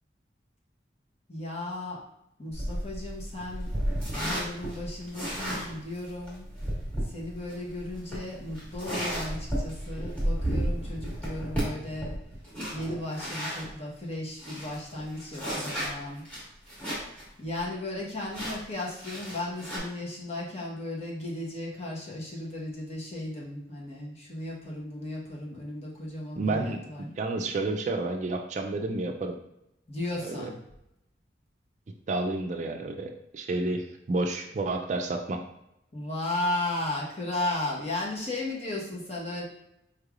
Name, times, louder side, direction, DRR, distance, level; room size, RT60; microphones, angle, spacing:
voice 1, 1.3-2.0 2.4-3.7 4.0-6.5 7.0-12.1 12.7-16.2 17.4-27.1 29.9-30.6 35.9-39.4, left 2 dB, 35° left, -4 dB, 1.0 m, -35 dB
sound 1, 2.5-13.7 14.1-14.2 14.4-17.2 17.6-17.7 18.3-19.8, right 1 dB, 5° left, 1.4 m, -33 dB
voice 2, 26.4-29.3 30.2-30.5 32.1-35.4, right 2 dB, 40° right, 3 dB, 0.3 m, -30 dB
4.6 x 3.3 x 2.4 m, 0.81 s
head